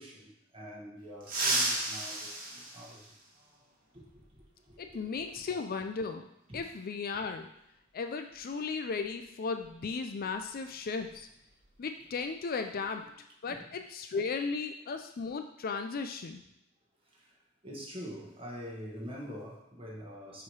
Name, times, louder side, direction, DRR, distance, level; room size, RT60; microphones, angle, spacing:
voice 1, 0.0-3.1 3.9-4.2 4.7-5.2 6.5-6.6 12.7-13.0 13.4-13.7 17.6-20.4, equal, 25° right, -2 dB, 1.4 m, -45 dB
sound 1, 1.2-3.6 5.3-5.4 6.6-6.7 8.3-8.5 8.8-9.1 9.5-11.7 12.0-12.2 12.7-13.1, right 2 dB, 45° right, 1.4 m, -35 dB
voice 2, 4.8-6.3 6.5-7.5 7.9-11.3 11.8-13.0 13.4-16.4, left 4 dB, 45° left, 6 dB, 0.4 m, -35 dB
7.1 x 3.1 x 4.7 m, 0.81 s
head